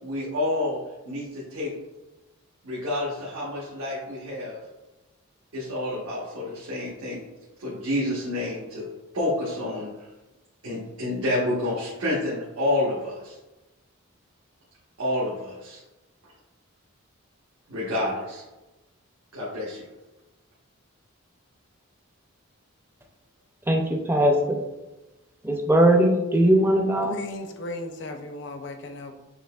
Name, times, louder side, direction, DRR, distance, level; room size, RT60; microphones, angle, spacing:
voice 1, 0.0-1.7 2.6-4.6 5.5-7.2 7.6-8.9 9.1-10.1 10.6-13.4 15.0-15.8 17.7-18.4 19.3-19.9, left 1 dB, 80° right, -7 dB, 1.1 m, -29 dB
voice 2, 23.7-24.6 25.4-27.2, right 1 dB, 10° right, 2 dB, 0.4 m, -20 dB
voice 3, 27.2-29.1, left 2 dB, 55° left, 6 dB, 0.5 m, -36 dB
6.5 x 2.9 x 2.3 m, 1.0 s
head